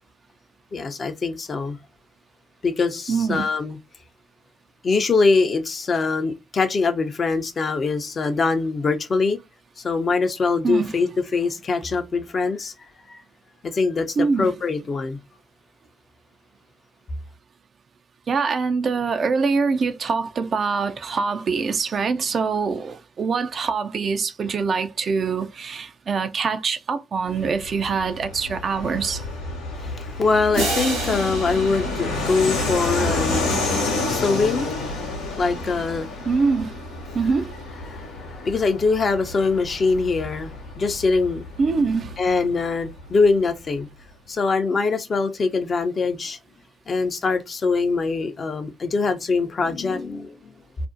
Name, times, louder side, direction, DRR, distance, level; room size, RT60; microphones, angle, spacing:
voice 1, 0.7-1.8 2.6-3.8 4.8-9.4 9.8-12.7 13.1-13.2 13.6-15.2 29.8-36.3 37.8-41.4 42.2-43.9 44.3-46.4 46.9-50.5, left 4 dB, 45° left, 0.5 m, -23 dB
voice 2, 3.1-3.5 10.6-10.9 14.2-14.5 18.3-29.3 36.2-36.8 37.1-37.5 41.6-42.2, right 5 dB, 50° right, 0.4 m, -24 dB
Fixed-wing aircraft airplane, 27.3-43.5, left 2 dB, 80° left, 0.7 m, -30 dB
sound 1, 30.5-33.4, right 2 dB, 90° right, 1.0 m, -30 dB
2.5 x 2.1 x 2.4 m
hypercardioid pair, 45°, 0 cm